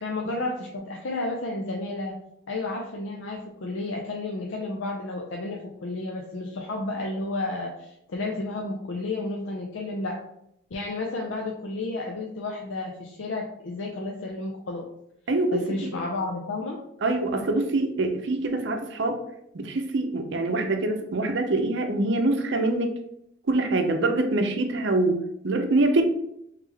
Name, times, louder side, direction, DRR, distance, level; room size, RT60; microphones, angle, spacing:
voice 1, 0.0-2.2 2.5-10.2 10.7-14.9 15.5-16.8, left 2 dB, 75° left, 0 dB, 0.5 m, -32 dB
voice 2, 15.3-15.9 17.0-19.2 19.5-22.9 23.5-26.0, right 2 dB, 65° right, 5 dB, 0.6 m, -24 dB
3.5 x 3.2 x 3.3 m, 0.76 s
head